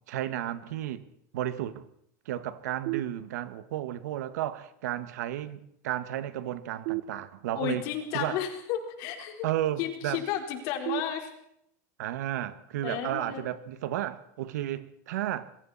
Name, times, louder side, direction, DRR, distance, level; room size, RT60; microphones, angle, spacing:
voice 1, 0.1-1.0 1.3-1.9 2.3-7.8 8.1-8.4 9.4-10.2 12.0-15.5, right 12 dB, 80° right, 1.8 m, -33 dB
sound 1, 2.9-3.8 6.8-7.9 10.9-11.9, right 17 dB, 55° right, 1.5 m, -37 dB
voice 2, 7.6-9.5 9.8-11.3 12.8-13.5, left 10 dB, 45° left, 4.3 m, -33 dB
27.0 x 22.5 x 4.3 m
supercardioid pair, 175°, 9 cm